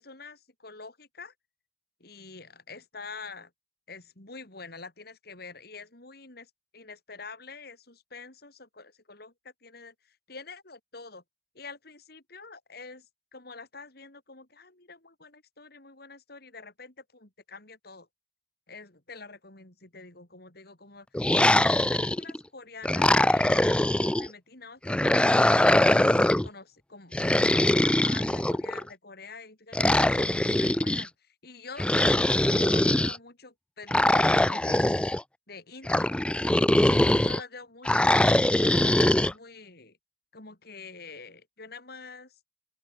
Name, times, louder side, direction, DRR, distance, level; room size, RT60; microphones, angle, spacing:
voice 1, 0.0-1.3 2.0-3.5 3.9-11.2 11.5-13.1 13.3-18.1 18.7-23.9 24.1-26.1 26.4-34.9 35.5-36.1 36.5-38.1 38.6-40.0 40.3-42.4, left 4 dB, 60° left, 4.3 m, -46 dB
sound 1, 21.1-22.4 22.8-24.3 24.9-26.5 27.1-28.8 29.7-31.1 31.8-33.2 33.9-35.2 35.9-37.4 37.8-39.3, left 1 dB, 5° left, 0.3 m, -22 dB
open air
head